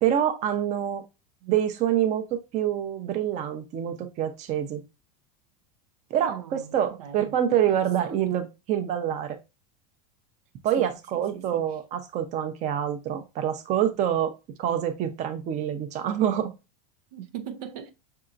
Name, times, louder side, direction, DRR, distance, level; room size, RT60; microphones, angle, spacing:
voice 1, 0.0-1.0 1.4-4.8 6.1-9.4 10.6-14.3 14.6-16.5, right 10 dB, 35° right, 0.7 m, -26 dB
voice 2, 6.2-7.4 7.7-8.5 10.8-11.7 17.1-17.9, right 9 dB, 80° right, 0.7 m, -41 dB
5.6 x 2.8 x 2.5 m
supercardioid pair, 135°, 19 cm